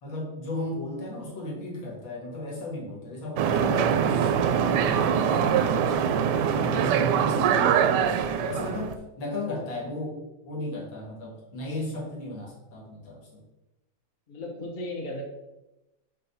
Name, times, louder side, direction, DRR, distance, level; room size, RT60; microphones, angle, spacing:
voice 1, 0.0-5.9 6.5-13.4, left 1 dB, 80° left, -2 dB, 2.6 m, -35 dB
voice 2, 1.2-1.6 7.3-7.4 14.3-15.2, left 1 dB, 30° left, -1 dB, 1.0 m, -38 dB
sound 1, 3.4-8.9, right 8 dB, 75° right, 1.1 m, -23 dB
5.3 x 4.3 x 5.5 m, 0.96 s
omnidirectional pair, 2.1 m